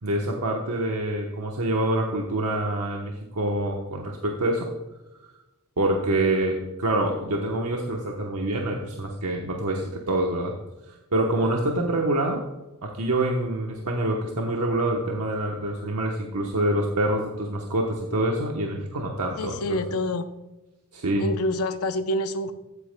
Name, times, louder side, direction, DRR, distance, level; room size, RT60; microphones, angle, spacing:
voice 1, 0.0-4.7 5.8-10.5 10.9-12.4 12.8-19.8 20.9-21.2, right 1 dB, 85° right, 0 dB, 1.0 m, -26 dB
voice 2, 19.4-20.3 21.2-22.5, left 1 dB, 70° left, 9 dB, 0.6 m, -27 dB
13.5 x 8.3 x 2.2 m, 1.0 s
head